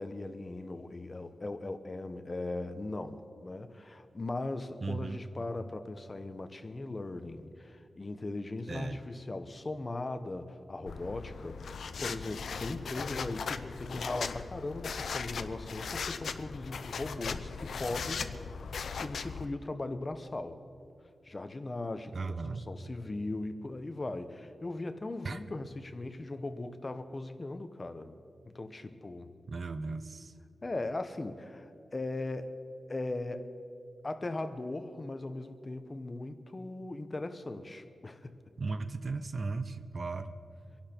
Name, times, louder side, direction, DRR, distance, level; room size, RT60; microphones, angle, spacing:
voice 1, 0.0-18.3 18.9-20.6 21.2-28.2 28.5-29.3 30.6-32.6 32.9-33.4 34.0-38.3, left 2 dB, 30° left, 9 dB, 0.9 m, -39 dB
voice 2, 4.8-5.2 8.7-9.0 22.1-22.7 25.2-25.4 29.5-30.3 38.6-40.4, right 3 dB, 50° right, 11 dB, 0.7 m, -36 dB
sound 1, 10.9-19.5, left 5 dB, 90° left, 0.6 m, -38 dB
25.5 x 11.5 x 4.5 m, 2.4 s
wide cardioid pair, 125°, 0 cm